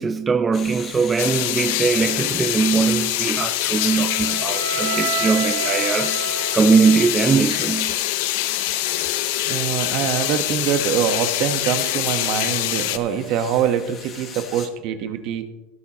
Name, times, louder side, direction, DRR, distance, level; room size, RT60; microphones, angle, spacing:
voice 1, 0.0-6.2 6.5-8.0, right 5 dB, 15° right, 0.4 m, -20 dB
sound 1, 0.5-14.7, left 7 dB, 35° left, 1.4 m, -38 dB
sound 2, 1.2-13.0, left 15 dB, 70° left, 0.7 m, -24 dB
Wind instrument woodwind instrument, 3.8-7.8, right 8 dB, 80° right, 1.0 m, -30 dB
voice 2, 9.4-15.5, right 9 dB, 50° right, 1.2 m, -24 dB
17.5 x 9.0 x 3.0 m
supercardioid pair, 145°, 0 cm